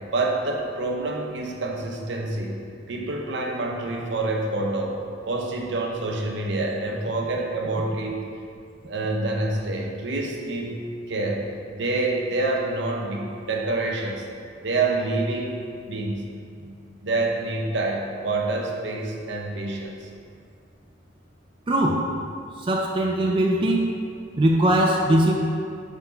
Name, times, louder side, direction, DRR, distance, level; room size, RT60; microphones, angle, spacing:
voice 1, 0.1-2.6 2.9-8.3 8.8-10.8 11.1-11.5 11.7-14.3 14.6-15.6 15.9-16.3 16.6-16.7 17.0-20.1, right 2 dB, 65° right, 0 dB, 0.8 m, -27 dB
voice 2, 21.7-22.0 22.7-24.0 24.4-25.3, right 1 dB, 25° right, -1 dB, 0.4 m, -20 dB
5.5 x 3.6 x 5.6 m, 2.3 s
head